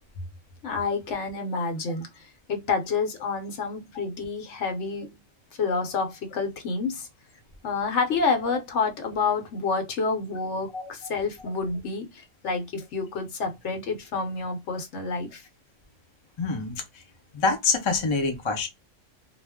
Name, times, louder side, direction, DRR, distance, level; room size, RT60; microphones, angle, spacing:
voice 1, 0.6-5.2 5.6-7.1 7.6-15.5, left 4 dB, 70° left, 1.0 m, -29 dB
voice 2, 16.4-16.8 17.3-18.7, left 4 dB, 35° left, 0.5 m, -25 dB
2.4 x 2.1 x 3.4 m
omnidirectional pair, 1.3 m